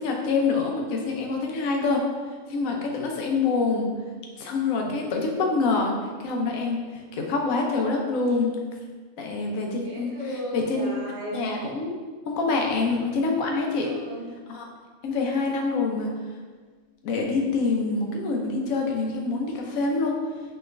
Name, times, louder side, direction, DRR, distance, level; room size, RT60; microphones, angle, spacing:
voice 1, 0.0-2.0 2.5-3.9 4.4-5.9 6.2-8.6 9.2-10.1 10.5-10.9 11.3-11.9 12.3-13.9 14.5-14.6 15.0-16.1 17.0-20.1, left 3 dB, 90° left, 1 dB, 1.1 m, -26 dB
voice 2, 9.8-11.4 13.8-14.3, equal, 60° right, -4 dB, 1.0 m, -35 dB
4.3 x 3.0 x 2.5 m, 1.5 s
omnidirectional pair, 1.4 m